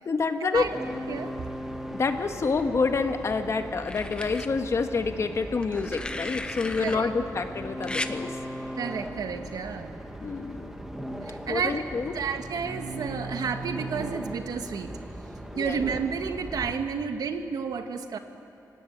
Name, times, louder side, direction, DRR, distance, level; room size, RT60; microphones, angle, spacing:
voice 1, 0.0-0.7 1.9-8.3 10.2-10.7 11.5-12.1 15.5-15.8, left 4 dB, 45° left, 7 dB, 1.5 m, -28 dB
sound 1, 0.5-16.7, equal, 5° right, 1.9 m, -38 dB
sound 2, 2.6-3.3 3.8-4.5 5.6-7.0 7.8-8.1 9.5-9.7, left 2 dB, 15° left, 1.0 m, -36 dB
voice 2, 6.8-7.1 8.8-9.9 11.2-11.8 12.1-14.9 15.5-18.2, right 6 dB, 70° right, 7 dB, 1.5 m, -31 dB
24.0 x 17.0 x 9.8 m, 2.8 s
wide cardioid pair, 110°, 7 cm